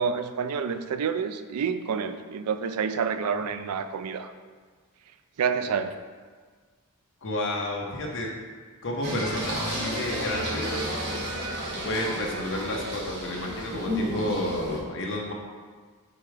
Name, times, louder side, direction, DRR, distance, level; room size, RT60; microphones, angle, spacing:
voice 1, 0.0-4.3 5.4-6.0, right 6 dB, 90° right, 10 dB, 0.4 m, -28 dB
voice 2, 7.2-8.3 8.8-10.8 11.8-15.3, left 1 dB, 60° left, 0 dB, 1.0 m, -31 dB
Singing, 9.0-14.8, equal, 50° right, 1.6 m, -32 dB
4.8 x 4.8 x 4.8 m, 1.6 s
head